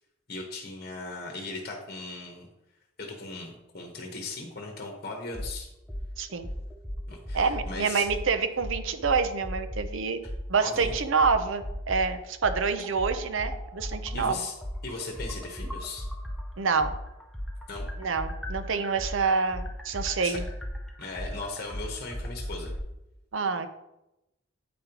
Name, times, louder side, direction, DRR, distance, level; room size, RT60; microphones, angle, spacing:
voice 1, 0.3-2.5 3.0-5.7 7.1-8.1 10.6-10.9 14.1-14.6 14.8-16.1 17.7-17.8 20.2-20.4 21.0-22.7, left 3 dB, 50° left, 1 dB, 0.9 m, -38 dB
sound 1, 5.3-5.5 5.9-6.1 6.4-7.7 8.1-8.2 8.6-9.9 10.2-10.4 10.8-12.1 12.4-16.4 16.8-22.8, equal, ahead, 0.6 m, -35 dB
voice 2, 6.2-6.5 7.3-10.2 10.5-14.4 16.6-16.9 18.0-20.4 23.3-23.7, right 5 dB, 80° right, 9 dB, 0.6 m, -27 dB
8.5 x 5.2 x 2.9 m, 0.90 s
head